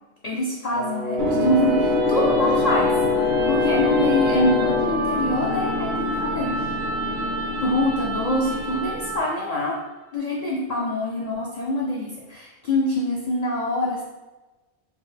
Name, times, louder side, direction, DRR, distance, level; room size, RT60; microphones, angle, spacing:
voice 1, 0.2-3.0 3.5-6.7 7.6-9.8 10.1-14.0, left 1 dB, 55° left, -4 dB, 0.4 m, -25 dB
Brass instrument, 0.7-5.0, left 3 dB, 85° left, 1.2 m, -24 dB
sound 1, 1.2-9.4, left 1 dB, 60° right, 0.8 m, -26 dB
4.5 x 2.1 x 3.3 m, 1.2 s
omnidirectional pair, 1.4 m